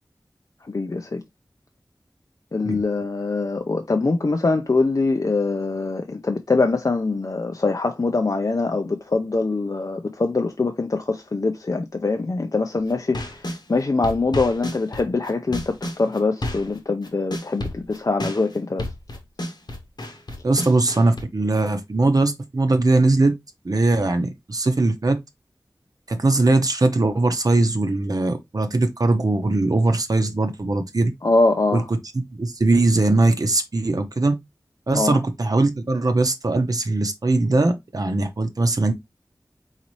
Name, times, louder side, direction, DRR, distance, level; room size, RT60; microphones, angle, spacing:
voice 1, 0.7-1.2 2.5-18.9 31.2-31.8 34.9-35.2, left 3 dB, 50° left, 0.5 m, -23 dB
sound 1, 12.9-13.6 14.0-16.8 17.0-21.2, left 1 dB, 75° left, 1.2 m, -31 dB
voice 2, 20.4-23.3 23.6-25.2 26.1-31.1 31.7-32.0 32.3-34.4 34.9-38.9, right 2 dB, 55° right, 0.8 m, -20 dB
4.1 x 4.1 x 3.0 m
wide cardioid pair, 60°, 7 cm